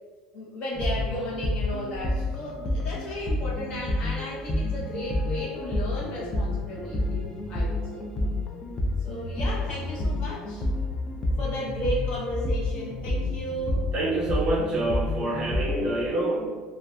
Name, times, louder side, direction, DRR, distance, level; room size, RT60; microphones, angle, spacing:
voice 1, 0.3-8.1 9.0-10.6 11.4-13.9, equal, 50° left, -4 dB, 0.7 m, -34 dB
sound 1, 0.7-15.9, left 1 dB, 25° left, 0.4 m, -29 dB
voice 2, 13.9-16.5, right 2 dB, 40° right, -3 dB, 0.6 m, -27 dB
2.6 x 2.3 x 2.2 m, 1.4 s
cardioid pair, 145°, 2 cm